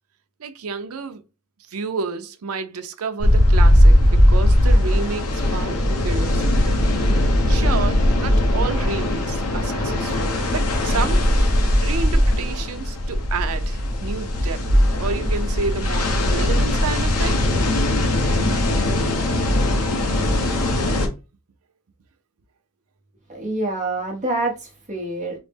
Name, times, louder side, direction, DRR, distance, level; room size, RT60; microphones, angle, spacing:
voice 1, 0.4-1.2 1.7-6.7 7.5-11.2 11.8-14.6 15.0-17.5, right 5 dB, 75° right, 0.5 m, -30 dB
sound 1, 3.2-21.1, left 1 dB, 85° left, 0.8 m, -19 dB
voice 2, 23.3-25.4, right 2 dB, 35° right, 0.8 m, -26 dB
4.0 x 2.0 x 3.4 m
head